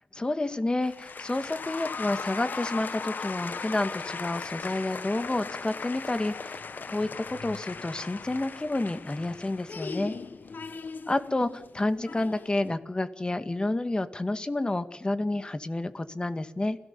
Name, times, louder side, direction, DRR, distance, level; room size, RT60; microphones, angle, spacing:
voice 1, 0.1-10.1 11.1-16.8, left 2 dB, 25° left, 10 dB, 2.1 m, -30 dB
sound 1, 0.8-12.8, left 4 dB, 60° left, 1.4 m, -38 dB
30.0 x 18.0 x 7.1 m, 0.85 s
cardioid pair, 70°, 4 cm